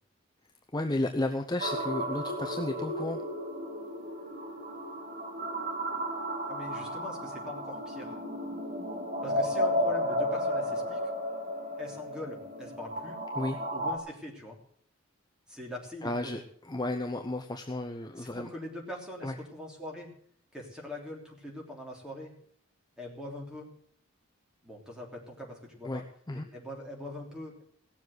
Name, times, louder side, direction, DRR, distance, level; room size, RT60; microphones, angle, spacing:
voice 1, 0.7-3.2 13.4-13.6 16.0-18.5 19.2-19.4 25.8-26.0 26.3-26.5, left 2 dB, 20° left, 4 dB, 0.7 m, -33 dB
sound 1, 1.6-14.0, equal, 45° right, 2.3 m, -33 dB
voice 2, 6.5-8.2 9.2-11.1 11.8-13.2 13.7-14.6 15.5-16.4 18.2-20.1 20.5-22.3 23.0-23.7 24.6-26.0 26.3-27.6, left 1 dB, 5° right, -2 dB, 3.3 m, -42 dB
17.5 x 7.4 x 7.9 m, 0.63 s
head